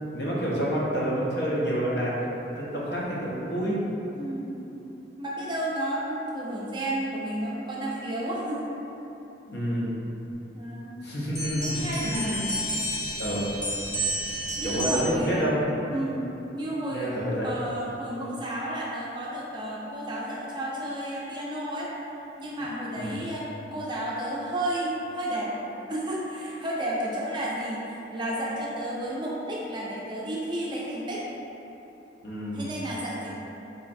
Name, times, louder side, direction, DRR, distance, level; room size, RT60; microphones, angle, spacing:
voice 1, 0.1-2.2 2.6-3.8 9.5-10.0 11.0-12.4 13.2-13.5 14.6-16.0 16.9-17.5 22.9-23.2 32.2-32.7, equal, 70° left, -6 dB, 0.7 m, -28 dB
voice 2, 4.1-4.7 5.2-8.6 10.5-11.0 11.6-12.4 14.5-15.5 15.9-16.2 16.5-17.1 17.4-21.9 22.4-31.3 32.5-33.3, right 1 dB, 25° right, -5 dB, 0.4 m, -32 dB
sound 1, 11.3-15.3, equal, 25° left, 0.7 m, -31 dB
3.9 x 3.0 x 2.6 m, 3.0 s
head